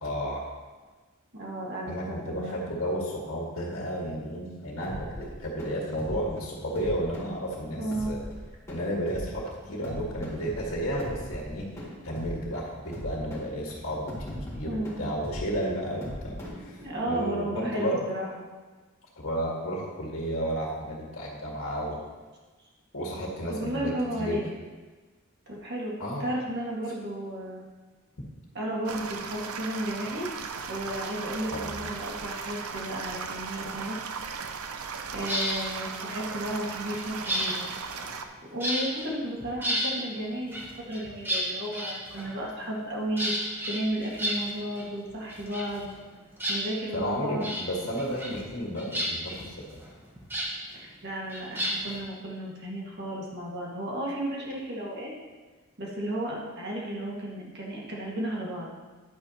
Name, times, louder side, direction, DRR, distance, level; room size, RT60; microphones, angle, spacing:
voice 1, 0.0-0.4 1.9-8.2 8.7-11.7 12.0-18.1 19.2-22.0 22.9-24.4 26.0-26.3 31.5-31.9 46.9-49.8, equal, 65° left, -3 dB, 1.7 m, -32 dB
voice 2, 1.3-2.6 7.8-8.2 14.3-15.2 16.8-18.5 23.5-24.5 25.5-27.6 28.6-30.3 30.7-34.5 35.1-37.7 38.5-40.6 40.9-43.3 43.7-45.9 46.5-47.6 50.7-55.1 55.8-58.7, right 1 dB, 50° right, -3 dB, 1.8 m, -33 dB
sound 1, 4.8-17.2, equal, 15° left, 2.0 m, -40 dB
sound 2, 28.9-38.2, right 5 dB, 80° right, 0.6 m, -37 dB
sound 3, 35.2-35.6 36.5-38.3 38.6-39.1 39.4-39.9 40.5-42.5 43.2-44.9 45.1-46.1 46.4-47.0 47.4-47.7 48.0-48.5 48.8-50.5 51.3-52.0, equal, 10° right, 1.1 m, -32 dB
10.5 x 8.6 x 2.9 m, 1.3 s
head